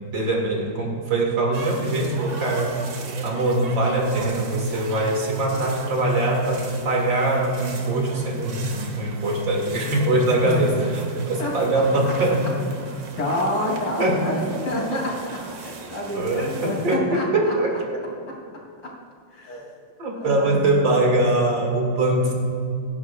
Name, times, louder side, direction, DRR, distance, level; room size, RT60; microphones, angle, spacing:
voice 1, 0.1-2.7 3.2-12.5 13.7-15.0 16.2-17.7 20.0-22.3, right 2 dB, 75° right, -1 dB, 3.0 m, -22 dB
sound 1, 1.5-17.0, right 4 dB, 55° right, 1.6 m, -38 dB
voice 2, 11.4-12.1 13.2-17.5 18.8-18.9 19.3-19.7 20.1-21.0, left 1 dB, 70° left, -4 dB, 3.7 m, -29 dB
26.0 x 10.5 x 2.4 m, 2.3 s
omnidirectional pair, 2.1 m